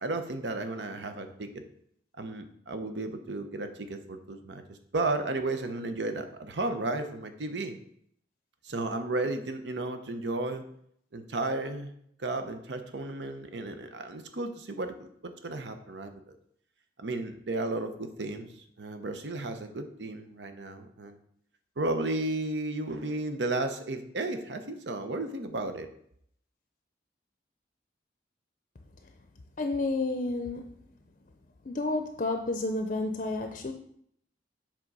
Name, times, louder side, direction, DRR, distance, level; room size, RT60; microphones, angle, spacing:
voice 1, 0.0-1.6 2.2-7.8 8.6-10.6 11.1-11.9 12.2-16.4 17.0-18.5 18.8-21.2 21.8-25.9, right 2 dB, 80° right, 8 dB, 0.8 m, -33 dB
voice 2, 29.6-30.8 31.7-33.7, left 2 dB, 45° left, 5 dB, 0.5 m, -30 dB
7.5 x 3.7 x 5.3 m, 0.69 s
head